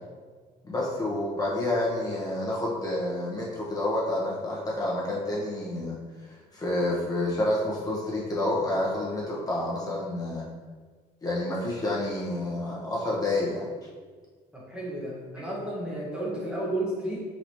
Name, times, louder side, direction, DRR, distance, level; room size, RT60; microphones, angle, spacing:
voice 1, 0.6-6.0 6.3-10.4 11.2-13.7, left 1 dB, 20° left, -6 dB, 1.1 m, -29 dB
voice 2, 14.5-17.2, right 1 dB, 5° right, -5 dB, 1.1 m, -32 dB
4.2 x 3.9 x 3.1 m, 1.5 s
cardioid pair, 110°, 17 cm